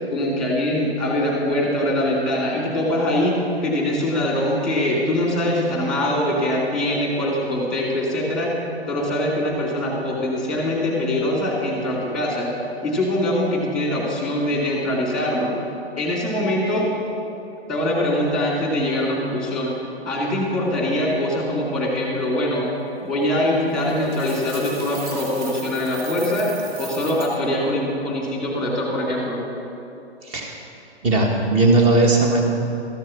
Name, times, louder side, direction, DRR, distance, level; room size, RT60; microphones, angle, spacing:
voice 1, 0.1-8.5 8.9-12.5 12.8-15.6 16.0-16.9 17.7-19.7 20.0-22.7 23.0-26.5 26.8-29.4, left 1 dB, ahead, -2 dB, 2.5 m, -23 dB
Coin (dropping), 23.9-27.4, right 3 dB, 35° right, 1.5 m, -37 dB
voice 2, 30.2-30.5 31.0-32.4, right 2 dB, 20° right, 1 dB, 1.4 m, -17 dB
13.5 x 7.4 x 7.0 m, 2.8 s
hypercardioid pair, 135°, 34 cm